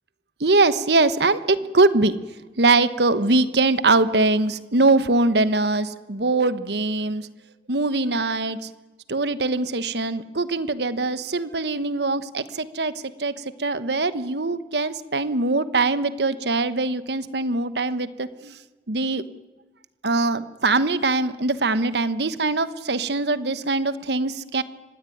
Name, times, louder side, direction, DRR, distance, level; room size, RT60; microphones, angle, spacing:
voice 1, 0.4-2.2 2.6-7.3 7.7-8.7 9.1-12.9 13.2-13.3 13.6-18.5 18.9-19.2 20.0-24.6, right 3 dB, 65° right, 14 dB, 1.2 m, -22 dB
25.0 x 19.0 x 9.3 m, 1.2 s
head